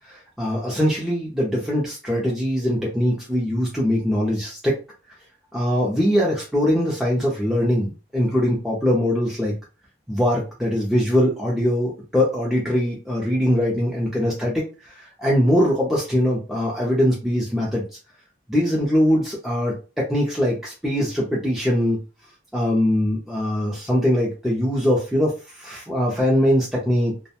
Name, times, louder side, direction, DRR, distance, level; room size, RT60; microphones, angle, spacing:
voice 1, 0.1-4.7 5.5-9.5 10.1-17.8 18.5-22.0 22.5-27.1, equal, ahead, -5 dB, 0.5 m, -22 dB
2.4 x 2.1 x 2.8 m, 0.32 s
head